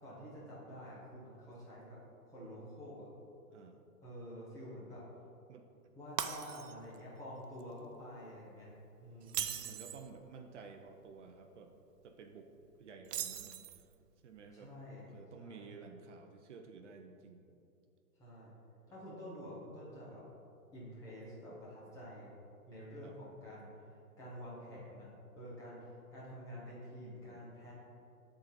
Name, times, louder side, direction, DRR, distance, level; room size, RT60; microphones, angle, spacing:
voice 1, 0.0-2.0 2.2-3.1 4.0-5.0 6.0-8.7 9.0-9.6 14.5-15.1 15.4-15.7 18.2-18.5 18.9-20.2 20.7-22.3 22.7-23.7 24.2-25.1 25.3-27.7, equal, 5° left, -8 dB, 0.6 m, -49 dB
voice 2, 3.5-3.9 5.5-5.7 9.6-11.7 12.0-12.5 12.8-13.9 14.2-14.7 15.0-17.6 21.5-21.6 23.0-23.2 27.0-27.5, right 5 dB, 50° right, 5 dB, 0.6 m, -53 dB
Shatter, 6.2-7.0 7.4-7.6 9.2-10.1 13.0-13.9, right 9 dB, 90° right, 0.6 m, -39 dB
9.5 x 3.9 x 4.1 m, 2.6 s
hypercardioid pair, 140°, 46 cm